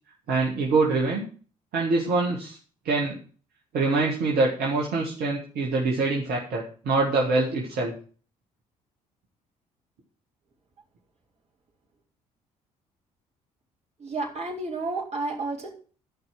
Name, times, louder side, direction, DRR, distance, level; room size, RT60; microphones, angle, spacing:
voice 1, 0.3-1.2 1.7-2.6 2.8-3.2 3.7-7.9, right 3 dB, 55° right, -2 dB, 2.2 m, -24 dB
voice 2, 14.0-15.7, right 3 dB, 35° right, -1 dB, 3.8 m, -31 dB
13.5 x 5.4 x 6.0 m, 0.40 s
figure-of-eight pair, 45°, 19 cm